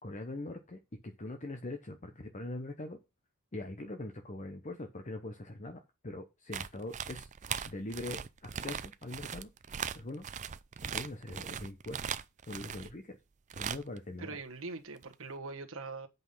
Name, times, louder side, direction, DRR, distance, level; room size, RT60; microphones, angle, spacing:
voice 1, 0.0-3.0 3.5-7.3 7.7-10.3 10.8-12.1 12.4-13.2 13.6-14.4, left 2 dB, 35° left, 0.9 m, -42 dB
sound 1, 6.5-12.9 13.5-14.0 15.0-15.1, right 8 dB, 35° right, 0.4 m, -39 dB
voice 2, 14.2-16.1, right 3 dB, 65° right, 1.4 m, -42 dB
8.2 x 5.4 x 5.6 m
head